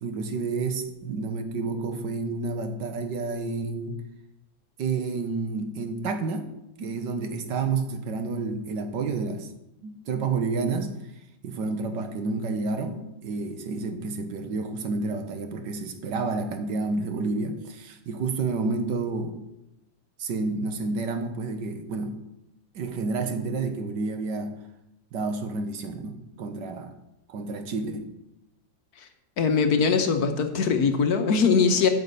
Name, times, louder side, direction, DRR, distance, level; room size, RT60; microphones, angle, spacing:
voice 1, 0.0-4.0 4.8-6.5 6.8-9.5 9.8-10.9 11.4-19.4 20.2-22.2 22.7-24.6 25.1-26.9 27.3-28.1, right 3 dB, 70° right, 7 dB, 1.6 m, -30 dB
voice 2, 29.4-31.9, left 5 dB, 60° left, 6 dB, 1.3 m, -21 dB
9.2 x 5.4 x 8.0 m, 0.89 s
omnidirectional pair, 2.0 m